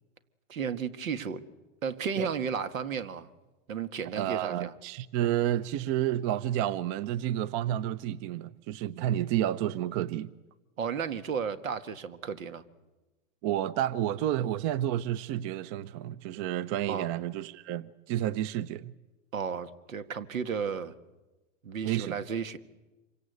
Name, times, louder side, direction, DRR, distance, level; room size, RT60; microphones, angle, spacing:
voice 1, 0.5-1.4 1.8-3.3 3.7-4.7 10.8-12.6 16.9-17.1 19.3-20.9 21.6-22.6, right 6 dB, 90° right, 1.9 m, -33 dB
voice 2, 4.2-10.3 13.4-18.9 21.8-22.2, right 12 dB, 45° right, 0.9 m, -30 dB
27.0 x 24.5 x 8.2 m
hypercardioid pair, 115°, 39 cm